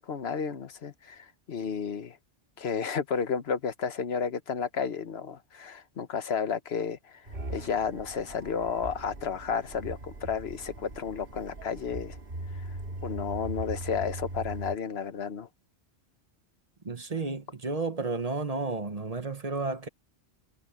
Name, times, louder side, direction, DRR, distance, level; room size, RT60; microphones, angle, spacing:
voice 1, 0.0-2.2 2.6-7.2 7.5-12.2 12.5-12.7 13.0-15.5, left 6 dB, 70° left, 1.3 m, -32 dB
sound 1, 7.3-14.8, right 2 dB, 55° right, 2.4 m, -40 dB
voice 2, 16.8-19.9, right 3 dB, 35° right, 1.2 m, -32 dB
omnidirectional pair, 1.1 m